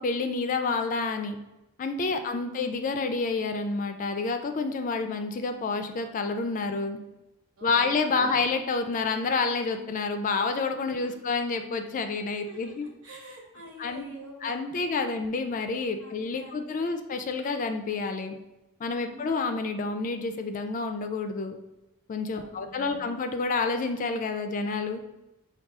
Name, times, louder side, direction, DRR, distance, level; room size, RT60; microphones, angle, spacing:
voice 1, 0.0-1.4 1.8-7.0 7.6-12.9 13.8-14.1 14.4-18.4 18.8-21.6 22.1-25.0, left 4 dB, 35° left, 7 dB, 0.3 m, -29 dB
voice 2, 2.1-2.7 7.6-8.4 10.9-11.2 12.4-15.2 16.0-16.9 19.0-19.6 22.3-23.1, right 1 dB, 70° right, -1 dB, 1.2 m, -48 dB
6.0 x 2.3 x 3.5 m, 0.97 s
head